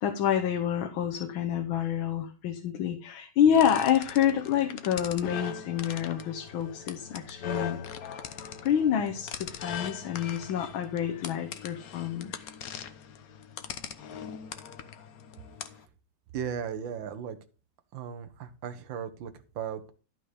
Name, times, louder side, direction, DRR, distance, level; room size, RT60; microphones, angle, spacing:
voice 1, 0.0-7.8 8.6-12.4, left 9 dB, 80° left, 4 dB, 1.7 m, -28 dB
sound 1, 3.5-15.9, left 7 dB, 60° left, 1.1 m, -41 dB
voice 2, 16.3-17.4 17.9-19.9, right 8 dB, 75° right, 8 dB, 1.7 m, -36 dB
12.0 x 5.6 x 5.0 m, 0.36 s
omnidirectional pair, 2.2 m